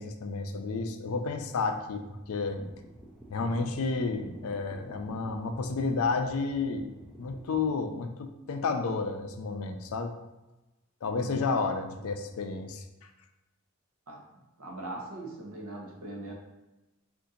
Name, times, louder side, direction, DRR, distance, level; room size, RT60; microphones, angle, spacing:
voice 1, 0.0-2.6 3.3-10.1 11.0-12.8, left 4 dB, 80° left, 7 dB, 0.4 m, -31 dB
sound 1, 2.2-7.7, right 1 dB, ahead, 0.4 m, -49 dB
voice 2, 11.1-11.5 14.1-14.2 14.6-16.3, right 2 dB, 90° right, 0 dB, 0.8 m, -41 dB
2.7 x 2.5 x 3.8 m, 1.0 s
head